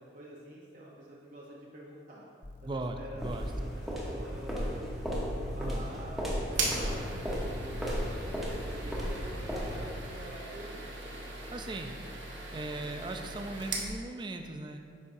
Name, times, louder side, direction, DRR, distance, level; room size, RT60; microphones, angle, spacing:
voice 1, 0.0-2.3 2.6-4.8 5.6-8.0 8.7-11.1, right 1 dB, 45° right, -5 dB, 0.8 m, -48 dB
sound 1, 2.4-13.9, right 1 dB, 40° left, 0.6 m, -47 dB
voice 2, 2.6-3.5 5.5-5.9 11.5-11.9 12.5-14.8, right 2 dB, 25° right, 5 dB, 0.4 m, -38 dB
sound 2, 3.2-10.0, equal, ahead, 0.9 m, -35 dB
sound 3, 6.5-13.9, right 3 dB, 85° right, 1.0 m, -40 dB
8.2 x 5.5 x 2.6 m, 2.2 s
head